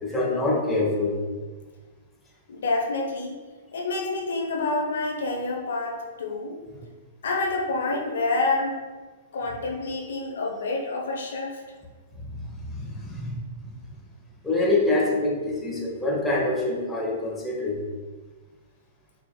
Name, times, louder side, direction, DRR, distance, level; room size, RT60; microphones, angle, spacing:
voice 1, 0.0-1.2 12.2-13.8 14.4-17.8, left 2 dB, 10° left, -3 dB, 0.9 m, -26 dB
voice 2, 2.5-3.3 3.7-6.6 7.2-8.8 9.3-11.6, left 3 dB, 70° left, 0 dB, 0.7 m, -28 dB
4.7 x 3.1 x 2.2 m, 1.3 s
hypercardioid pair, 115°, 0 cm